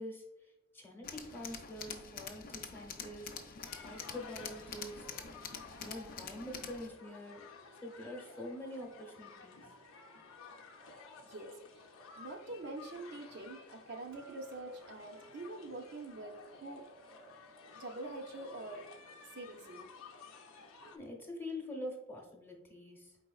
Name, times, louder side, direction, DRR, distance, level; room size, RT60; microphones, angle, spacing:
voice 1, 0.0-5.1 5.8-7.4 7.7-9.7 20.8-23.2, left 1 dB, 10° left, 0 dB, 0.8 m, -46 dB
Tools, 1.0-6.9, left 6 dB, 45° left, 0.4 m, -46 dB
sound 1, 3.6-21.0, left 4 dB, 80° left, 0.6 m, -54 dB
voice 2, 11.3-11.9 12.2-16.8 17.7-18.8 19.3-19.9, right 2 dB, 50° right, 4 dB, 0.5 m, -45 dB
Hammer, 14.1-20.4, right 2 dB, 90° right, 1.0 m, -63 dB
4.5 x 4.1 x 2.3 m, 0.93 s
head